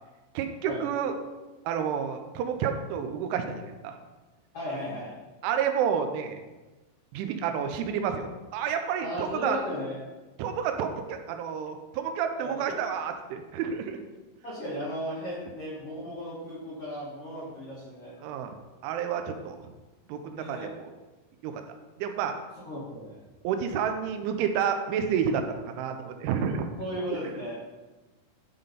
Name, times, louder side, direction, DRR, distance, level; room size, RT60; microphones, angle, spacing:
voice 1, 0.3-1.1 1.7-4.0 5.4-6.4 7.1-9.6 10.4-14.0 18.2-18.6 18.8-19.6 20.1-20.7 21.4-21.6 22.0-22.3 23.4-26.7, right 7 dB, 85° right, 6 dB, 3.1 m, -30 dB
voice 2, 4.5-5.2 9.0-10.0 12.4-12.8 14.4-18.1 20.3-20.7 22.6-23.2 26.8-27.5, equal, 80° left, -6 dB, 1.3 m, -35 dB
11.0 x 3.9 x 5.1 m, 1.2 s
omnidirectional pair, 5.5 m